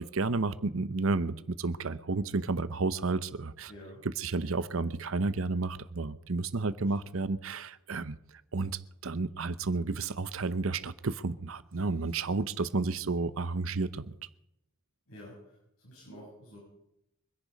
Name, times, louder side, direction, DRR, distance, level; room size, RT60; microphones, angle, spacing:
voice 1, 0.0-3.7 4.0-8.2 8.5-14.1, right 3 dB, 75° right, 0.8 m, -31 dB
voice 2, 3.7-4.0 6.5-6.7 15.1-15.4 15.8-16.6, equal, 85° left, 7.2 m, -49 dB
24.5 x 10.5 x 5.3 m
head